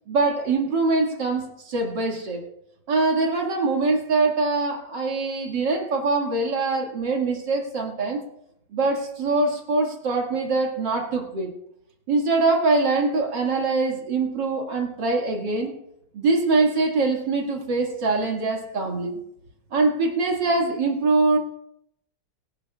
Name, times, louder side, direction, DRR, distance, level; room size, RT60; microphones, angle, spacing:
voice 1, 0.1-2.4 2.9-8.2 8.7-11.5 12.1-15.7 16.1-19.2 19.7-21.4, right 3 dB, 70° right, 1 dB, 2.7 m, -23 dB
23.0 x 10.5 x 2.4 m, 0.78 s
omnidirectional pair, 2.0 m